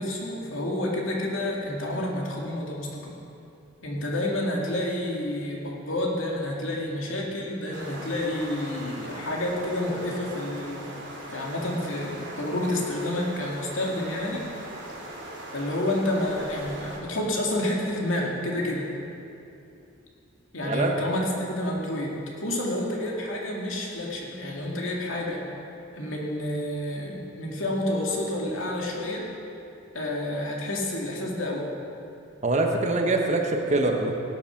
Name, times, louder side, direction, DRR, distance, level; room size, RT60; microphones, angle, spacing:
voice 1, 0.0-3.1 3.8-10.9 11.3-14.4 15.5-18.9 20.5-25.4 25.9-29.2 29.9-31.7, left 1 dB, 80° left, -2 dB, 2.4 m, -29 dB
sound 1, 7.7-17.0, right 1 dB, 60° right, 3.0 m, -40 dB
voice 2, 32.4-34.1, right 2 dB, 35° right, 2 dB, 1.3 m, -24 dB
17.0 x 8.6 x 6.0 m, 2.7 s
head